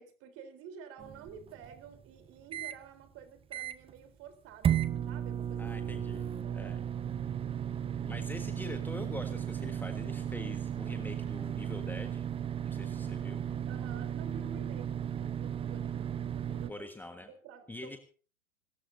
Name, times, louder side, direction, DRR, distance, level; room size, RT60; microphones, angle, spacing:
voice 1, 0.0-5.8 6.4-7.0 13.7-16.9 17.3-18.0, right 6 dB, 35° right, 8 dB, 3.8 m, -51 dB
sound 1, 1.0-2.8 3.2-3.3 3.5-4.0 4.6-16.7, right 9 dB, 15° right, 0.8 m, -35 dB
voice 2, 5.6-6.2 6.5-6.8 8.0-12.3 12.6-13.5 16.5-17.3 17.7-18.0, left 2 dB, 5° left, 7 dB, 1.5 m, -44 dB
28.5 x 14.0 x 2.7 m, 0.38 s
hypercardioid pair, 110°, 39 cm